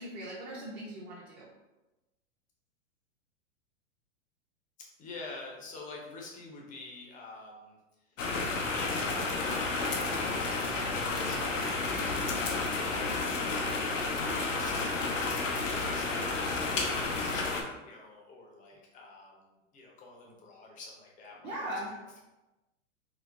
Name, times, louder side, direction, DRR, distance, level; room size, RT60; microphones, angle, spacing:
voice 1, 0.0-1.5 10.7-10.9 21.4-21.9, right 1 dB, 30° right, -7 dB, 0.6 m, -39 dB
voice 2, 5.0-7.8 8.7-8.9 9.4-15.4 15.9-22.2, left 3 dB, 20° left, -1 dB, 0.6 m, -48 dB
sound 1, 8.2-17.6, left 3 dB, 90° left, 0.7 m, -31 dB
3.8 x 2.0 x 2.5 m, 1.1 s
hypercardioid pair, 120°, 38 cm